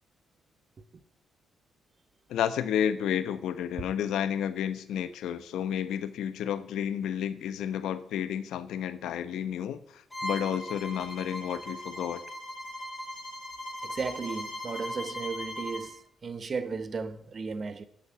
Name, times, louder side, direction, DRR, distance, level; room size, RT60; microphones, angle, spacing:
voice 1, 2.3-12.2, left 9 dB, 80° left, 0.9 m, -31 dB
Bowed string instrument, 10.1-15.9, equal, 15° left, 4.0 m, -38 dB
voice 2, 13.8-17.9, right 4 dB, 40° right, 1.2 m, -35 dB
10.0 x 7.9 x 9.1 m
cardioid pair, 90°, 0 cm